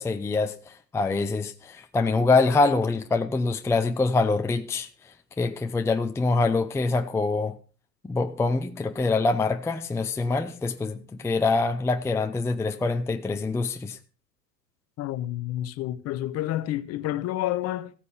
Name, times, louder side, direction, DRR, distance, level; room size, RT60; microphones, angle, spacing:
voice 1, 0.0-4.9 5.4-7.6 8.0-14.0, left 3 dB, 5° left, 0.7 m, -25 dB
voice 2, 15.0-17.9, left 14 dB, 30° left, 1.0 m, -29 dB
15.0 x 9.5 x 5.7 m
figure-of-eight pair, 90°, 49 cm